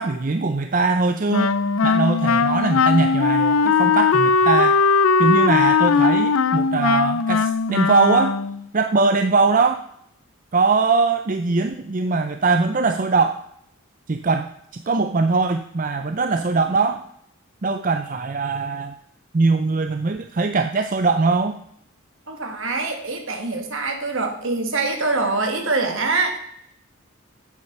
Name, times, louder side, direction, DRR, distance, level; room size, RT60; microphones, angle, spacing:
voice 1, 0.0-1.6 1.8-4.8 5.2-8.4 8.7-9.8 10.5-13.5 14.1-17.0 17.6-18.9 19.3-21.6, right 4 dB, 40° right, 7 dB, 0.5 m, -21 dB
Wind instrument woodwind instrument, 1.3-8.6, left 5 dB, 80° left, 0.5 m, -19 dB
voice 2, 22.3-26.4, right 3 dB, 65° right, 4 dB, 1.9 m, -24 dB
8.4 x 7.3 x 6.7 m, 0.71 s
head